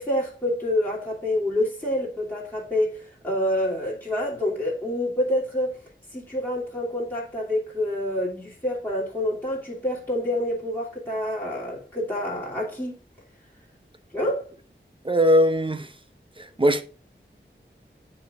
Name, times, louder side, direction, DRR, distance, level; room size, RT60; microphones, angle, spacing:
voice 1, 0.0-2.9 3.2-5.8 6.1-12.9 14.1-14.5, left 1 dB, 10° left, 2.7 m, -27 dB
voice 2, 15.0-15.9 16.6-16.8, equal, 25° right, 0.9 m, -19 dB
9.4 x 4.4 x 3.6 m
wide cardioid pair, 60°, 20 cm